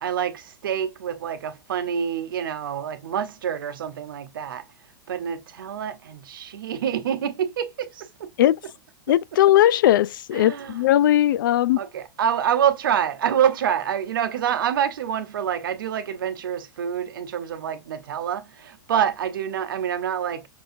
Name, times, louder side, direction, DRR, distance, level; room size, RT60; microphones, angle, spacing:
voice 1, 0.0-4.6 5.1-8.3 10.3-10.7 11.8-20.5, right 9 dB, 85° right, 0.8 m, -26 dB
voice 2, 9.1-11.8, left 13 dB, 80° left, 0.4 m, -18 dB
6.0 x 2.7 x 2.5 m
hypercardioid pair, 125°, 11 cm